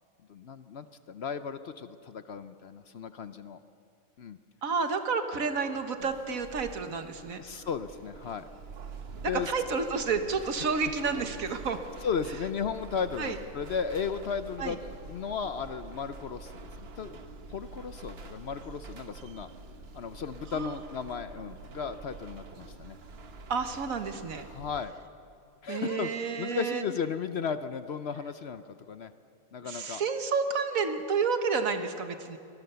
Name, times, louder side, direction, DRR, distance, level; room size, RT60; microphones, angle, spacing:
voice 1, 0.3-3.6 4.2-4.4 7.4-8.5 9.3-9.5 12.0-14.8 15.1-17.2 17.5-19.5 19.9-23.0 24.4-24.9 25.6-26.1 26.4-29.1 29.5-30.0, left 6 dB, 55° left, 11 dB, 0.8 m, -35 dB
voice 2, 4.6-7.4 9.2-11.8 13.2-13.4 14.6-14.7 20.5-20.7 23.5-24.5 25.7-26.8 29.6-32.4, right 5 dB, 70° right, 7 dB, 1.7 m, -30 dB
sound 1, 6.0-24.9, right 4 dB, 50° right, 1.2 m, -46 dB
24.0 x 19.5 x 6.9 m, 2.5 s
omnidirectional pair, 1.5 m